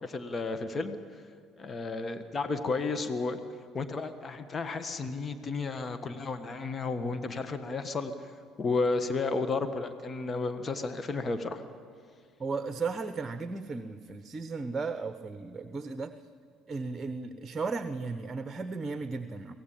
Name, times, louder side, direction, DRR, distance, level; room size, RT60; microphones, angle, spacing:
voice 1, 0.0-1.0 1.6-3.4 3.7-8.1 8.6-11.6, left 3 dB, 35° left, 9 dB, 1.5 m, -32 dB
voice 2, 12.4-16.1 16.7-19.5, right 4 dB, 30° right, 10 dB, 1.0 m, -35 dB
24.0 x 17.5 x 8.7 m, 2.2 s
hypercardioid pair, 60°, 0 cm